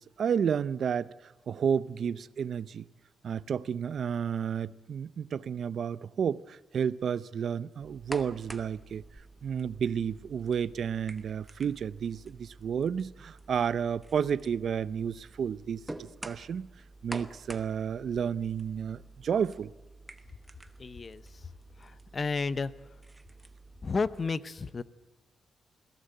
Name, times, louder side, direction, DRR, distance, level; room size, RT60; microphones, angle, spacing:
voice 1, 0.0-2.8 3.2-9.0 9.4-16.7 17.0-19.7, right 7 dB, 50° right, 0.6 m, -31 dB
sound 1, 7.8-24.3, right 2 dB, 10° right, 1.0 m, -49 dB
voice 2, 20.8-21.5 21.8-22.7 23.8-24.8, left 4 dB, 30° left, 0.7 m, -32 dB
21.5 x 16.5 x 9.1 m
wide cardioid pair, 170°, 0 cm